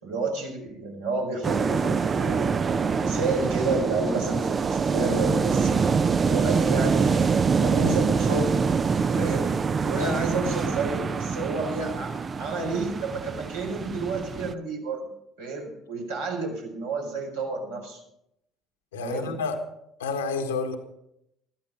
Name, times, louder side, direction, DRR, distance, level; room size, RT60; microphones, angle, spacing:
voice 1, 0.0-5.8 6.3-8.6 9.1-15.1 15.4-18.0 19.0-19.3, right 3 dB, 80° right, -2 dB, 4.5 m, -30 dB
sound 1, 1.4-14.5, right 5 dB, 35° right, 0.6 m, -25 dB
voice 2, 18.9-19.6 20.0-20.8, left 4 dB, 80° left, 6 dB, 1.5 m, -29 dB
14.5 x 12.0 x 5.8 m, 0.80 s
figure-of-eight pair, 55°, 0 cm